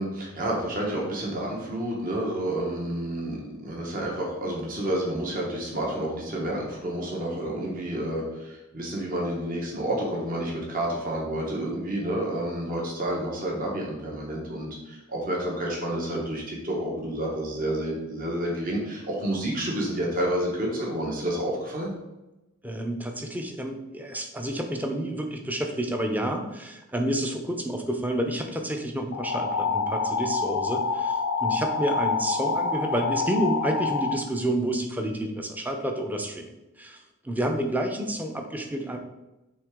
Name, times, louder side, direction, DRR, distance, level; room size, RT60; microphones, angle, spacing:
voice 1, 0.0-21.9, right 1 dB, 45° right, -2 dB, 1.2 m, -29 dB
voice 2, 22.6-39.0, right 1 dB, 10° right, 4 dB, 0.6 m, -29 dB
sound 1, 29.1-34.1, left 4 dB, 75° left, 0.6 m, -27 dB
7.9 x 3.4 x 3.7 m, 1.0 s
head